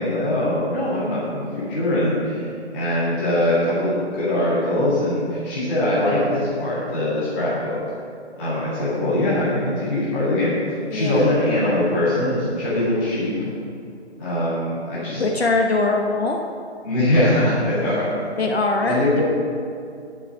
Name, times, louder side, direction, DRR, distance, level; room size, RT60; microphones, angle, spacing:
voice 1, 0.0-2.5 2.7-7.8 8.4-10.5 10.9-13.5 14.2-15.2 16.8-18.1 18.8-19.2, left 1 dB, 10° left, -11 dB, 2.0 m, -22 dB
voice 2, 10.9-11.3 15.2-16.4 18.4-19.2, left 3 dB, 60° left, 1 dB, 1.0 m, -22 dB
11.0 x 5.3 x 7.2 m, 2.4 s
figure-of-eight pair, 165°, 35 cm